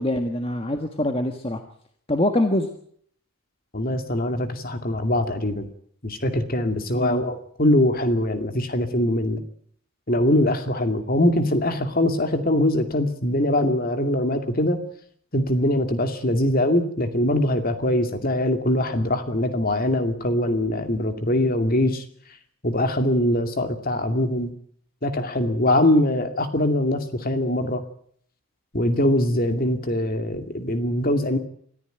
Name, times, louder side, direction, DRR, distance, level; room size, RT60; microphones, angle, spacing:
voice 1, 0.0-1.6 2.1-2.7 6.9-7.2, left 1 dB, 25° left, 5 dB, 1.5 m, -24 dB
voice 2, 3.7-5.7 6.0-9.4 10.1-14.8 15.3-22.0 22.6-24.5 25.0-27.8 28.7-31.4, left 1 dB, 40° left, 7 dB, 2.4 m, -22 dB
24.5 x 14.0 x 9.1 m, 0.63 s
head